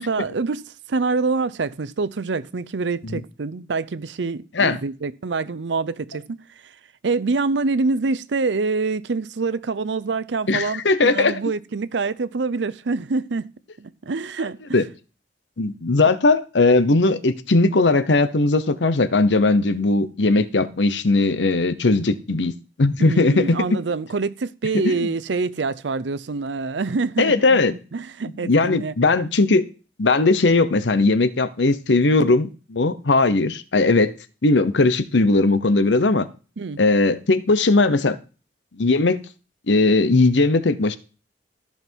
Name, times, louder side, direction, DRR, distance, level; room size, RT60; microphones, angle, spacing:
voice 1, 0.0-6.7 7.0-13.5 13.8-14.8 23.0-28.9 36.6-36.8, right 4 dB, 80° right, 0.6 m, -26 dB
voice 2, 10.5-11.4 14.7-14.8 15.6-22.5 22.8-23.6 24.8-25.1 27.2-27.7 28.4-29.6 30.0-34.1 34.4-36.3 36.8-38.2 38.8-39.2 39.7-41.0, left 3 dB, 90° left, 0.9 m, -18 dB
14.0 x 5.9 x 4.6 m
head